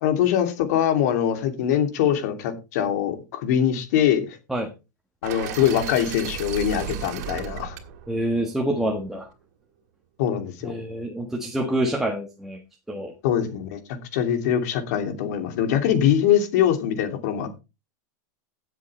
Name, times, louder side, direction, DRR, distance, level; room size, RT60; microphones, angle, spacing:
voice 1, 0.0-4.4 5.2-7.8 10.2-10.7 13.2-13.8 14.1-17.6, left 9 dB, 65° left, 7 dB, 2.8 m, -23 dB
sound 1, 5.2-9.3, right 9 dB, 65° right, 2.4 m, -35 dB
voice 2, 8.1-9.3 10.6-12.6 12.9-13.1, right 1 dB, 5° right, 1 dB, 1.5 m, -26 dB
16.5 x 7.7 x 3.3 m, 0.28 s
supercardioid pair, 150°, 10 cm